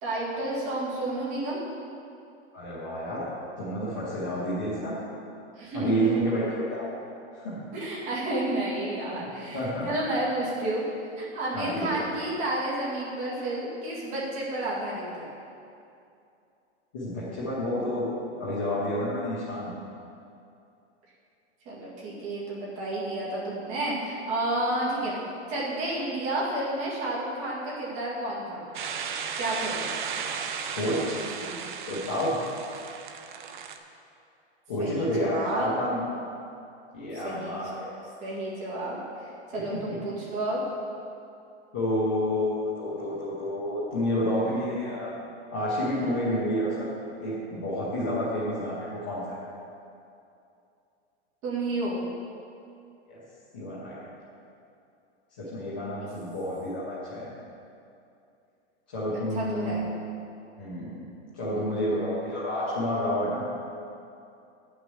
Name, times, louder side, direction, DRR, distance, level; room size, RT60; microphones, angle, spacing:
voice 1, 0.0-1.6 5.6-6.1 7.7-10.8 11.2-15.3 21.7-25.2 25.5-28.7 29.4-29.9 31.4-31.6 34.8-35.7 37.2-37.6 38.2-40.6 51.4-52.0 56.0-56.1 59.3-59.8, right 1 dB, 20° right, -6 dB, 2.1 m, -31 dB
voice 2, 2.5-3.2 3.6-5.0 5.7-6.9 7.3-7.6 9.1-9.3 9.5-9.9 11.5-12.0 16.9-18.1 18.4-19.7 30.8-31.2 31.9-32.4 34.7-36.0 36.9-37.9 39.5-40.0 41.7-45.2 45.5-46.9 47.2-49.4 53.1-53.2 53.5-54.0 55.4-57.3 58.9-59.8 60.6-61.0 61.3-63.4, equal, 10° left, -9 dB, 0.4 m, -29 dB
sound 1, 28.7-33.8, right 6 dB, 45° right, 0.7 m, -35 dB
9.0 x 6.2 x 7.5 m, 2.6 s
supercardioid pair, 175°, 34 cm